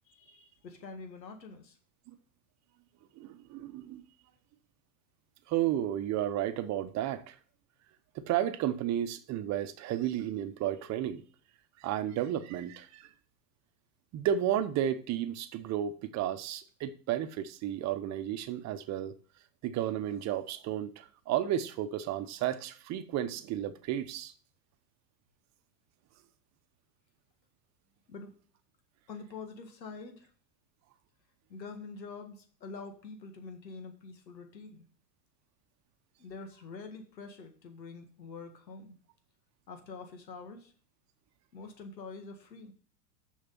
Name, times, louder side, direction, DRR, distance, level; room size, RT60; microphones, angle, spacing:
voice 1, 0.1-1.8 28.1-28.4 29.1-30.3 31.5-34.9 36.2-39.0 39.7-40.7 41.5-42.7, left 4 dB, 85° left, 1.9 m, -46 dB
voice 2, 3.2-4.0 5.5-7.4 8.1-11.2 11.8-13.1 14.1-19.1 19.6-24.3, right 11 dB, 35° right, 0.9 m, -32 dB
6.7 x 5.6 x 5.4 m
hypercardioid pair, 100°, 49 cm